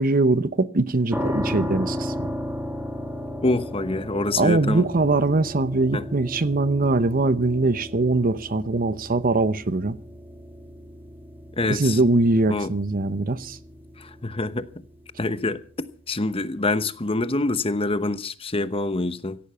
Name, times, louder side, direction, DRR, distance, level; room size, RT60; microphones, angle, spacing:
voice 1, 0.0-2.3 4.4-10.0 11.7-13.6, right 2 dB, 45° right, 0.8 m, -22 dB
sound 1, 1.1-16.0, left 1 dB, 10° right, 2.2 m, -35 dB
voice 2, 3.4-4.8 5.9-6.0 11.6-12.0 12.5-12.7 14.0-14.7 15.2-15.6 16.1-19.4, left 2 dB, 30° left, 1.0 m, -25 dB
17.5 x 14.0 x 5.6 m
head